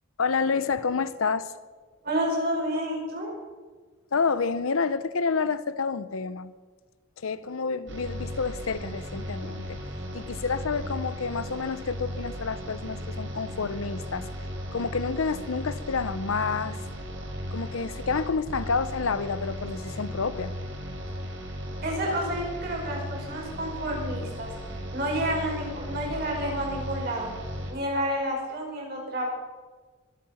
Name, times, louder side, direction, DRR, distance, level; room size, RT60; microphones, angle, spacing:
voice 1, 0.2-1.5 4.1-6.5 7.2-9.8 10.1-14.3 14.7-16.8 17.5-20.5, left 5 dB, 85° left, 0.7 m, -29 dB
voice 2, 2.0-3.3 21.8-24.5 24.9-27.3 27.7-29.3, right 1 dB, 45° right, 5.2 m, -30 dB
sound 1, 7.9-27.7, equal, 65° right, 3.4 m, -36 dB
23.5 x 8.8 x 5.7 m
head